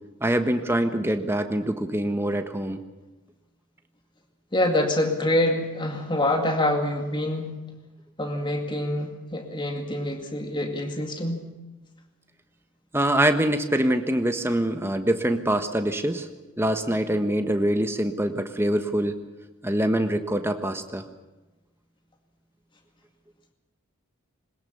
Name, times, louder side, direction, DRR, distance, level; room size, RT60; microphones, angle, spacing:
voice 1, 0.2-2.8 12.9-16.3 16.6-19.2 19.6-21.0, right 1 dB, 10° right, 7 dB, 1.3 m, -24 dB
voice 2, 4.5-7.6 8.2-11.4, left 1 dB, 20° left, 4 dB, 2.1 m, -26 dB
21.5 x 20.0 x 7.1 m, 1.1 s
head